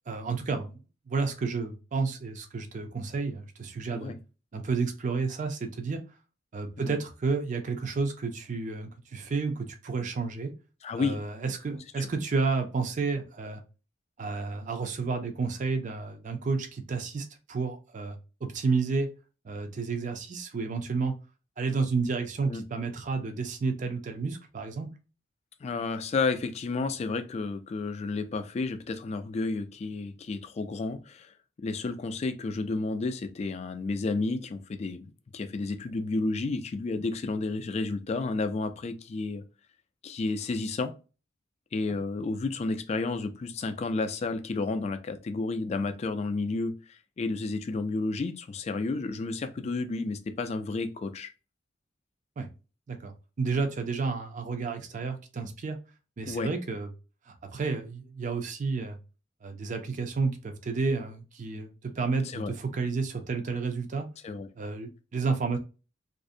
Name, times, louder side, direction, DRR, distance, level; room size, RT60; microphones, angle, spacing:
voice 1, 0.1-0.8 1.1-4.1 4.5-6.0 6.5-10.5 11.0-13.6 14.2-19.1 19.4-21.1 21.6-24.9 52.4-52.5 52.9-55.8 56.2-56.9 57.3-59.0 59.4-64.1 64.6-65.6, right 4 dB, 45° right, 0.4 m, -31 dB
voice 2, 10.8-11.2 12.0-12.1 22.4-22.7 25.6-31.3 31.6-39.4 40.0-41.0 41.7-51.3 56.3-56.5 62.3-62.5 64.2-64.5, left 3 dB, 35° left, 0.3 m, -31 dB
2.5 x 2.0 x 2.5 m
head